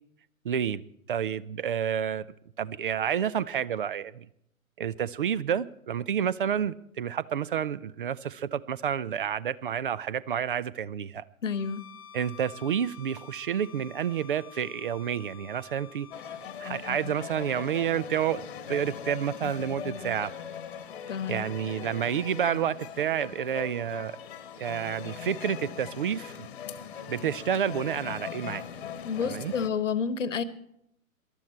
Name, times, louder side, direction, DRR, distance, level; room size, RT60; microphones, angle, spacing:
voice 1, 0.4-0.8 1.1-2.3 2.6-4.3 4.8-11.2 12.1-16.1 16.6-18.4 18.7-20.3 21.3-24.2 24.6-26.5 27.1-28.6 29.3-29.5, right 8 dB, 40° right, 19 dB, 0.5 m, -29 dB
voice 2, 11.4-11.8 21.1-21.5 29.0-30.4, left 6 dB, 60° left, 15 dB, 1.1 m, -29 dB
Bowed string instrument, 11.5-16.9, left 9 dB, 20° left, 0.9 m, -50 dB
sound 1, 16.1-29.7, left 8 dB, 40° left, 1.2 m, -40 dB
19.0 x 12.5 x 4.4 m, 0.76 s
figure-of-eight pair, 120°, 42 cm